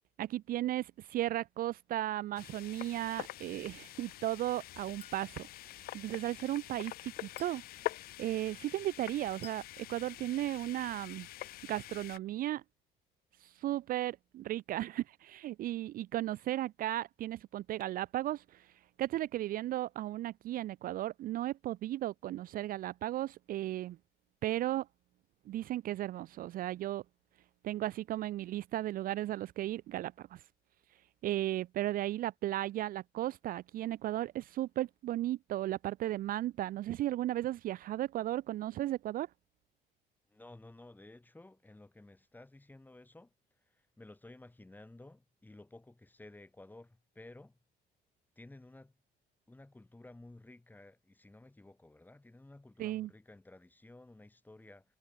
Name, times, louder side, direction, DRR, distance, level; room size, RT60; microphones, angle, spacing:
voice 1, 0.2-5.5 5.9-7.6 8.2-11.3 11.7-12.6 13.4-18.7 19.0-24.0 24.4-24.9 25.5-27.0 27.6-30.4 31.2-39.3 52.8-53.1, right 14 dB, 55° right, 0.4 m, -35 dB
sound 1, 2.4-12.2, left 16 dB, 60° left, 0.4 m, -45 dB
Chink clink, 5.0-5.3 7.4-7.7 9.4-9.7, left 7 dB, 40° left, 2.6 m, -54 dB
voice 2, 40.3-43.3 43.6-47.6 48.4-48.9 49.5-55.0, left 2 dB, 10° left, 3.5 m, -54 dB
cardioid pair, 110°, 17 cm